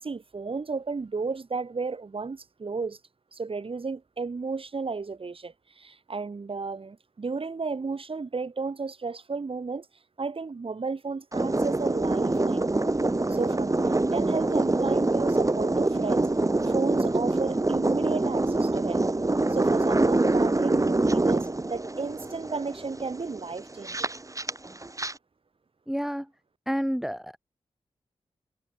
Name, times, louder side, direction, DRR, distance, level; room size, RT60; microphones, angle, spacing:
voice 1, 0.0-3.0 3.3-9.9 10.2-12.6 13.3-16.3 16.6-19.0 19.5-24.1, right 4 dB, 55° right, 3.9 m, -33 dB
sound 1, 11.3-25.1, right 2 dB, 30° right, 3.7 m, -25 dB
voice 2, 25.9-26.3 26.7-27.4, equal, 5° right, 3.2 m, -29 dB
cardioid pair, 50°, 11 cm